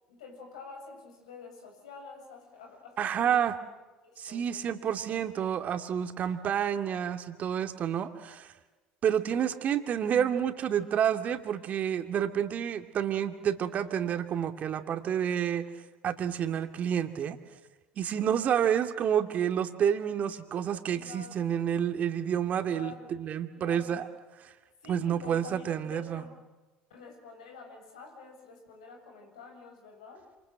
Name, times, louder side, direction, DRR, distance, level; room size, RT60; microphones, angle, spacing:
voice 1, 0.1-3.5 4.0-5.2 6.3-6.6 18.1-18.7 20.9-21.5 22.6-23.1 23.5-24.0 24.8-26.3 26.9-30.3, left 4 dB, 80° left, 2 dB, 7.8 m, -48 dB
voice 2, 3.0-3.5 4.2-8.5 9.0-15.6 16.0-17.4 18.0-24.1 24.9-26.2, right 9 dB, 45° right, 7 dB, 2.5 m, -29 dB
28.0 x 27.5 x 7.7 m, 1.2 s
hypercardioid pair, 65°, 3 cm